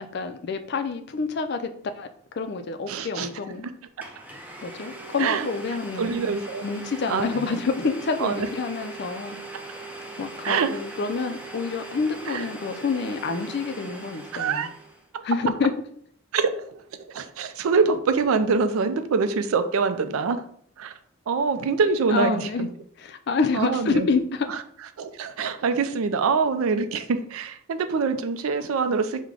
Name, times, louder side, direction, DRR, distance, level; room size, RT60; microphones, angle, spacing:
voice 1, 0.0-1.7 2.0-2.1 2.3-3.6 4.6-6.3 6.6-9.4 10.2-14.7 15.2-15.7 22.1-22.7 23.0-24.6, left 4 dB, 50° left, 7 dB, 0.4 m, -28 dB
voice 2, 2.9-3.3 4.0-4.1 5.2-5.5 6.0-6.7 7.1-7.6 8.2-8.5 10.4-10.7 12.3-12.4 14.3-14.7 15.1-15.2 16.3-16.8 17.1-20.4 20.8-20.9 21.3-22.7 23.5-24.1 25.0-29.2, right 5 dB, 90° right, 10 dB, 0.4 m, -24 dB
Domestic sounds home sounds, 3.5-3.6 4.0-15.1, right 2 dB, 10° right, 0.5 m, -40 dB
4.7 x 2.2 x 3.7 m, 0.63 s
head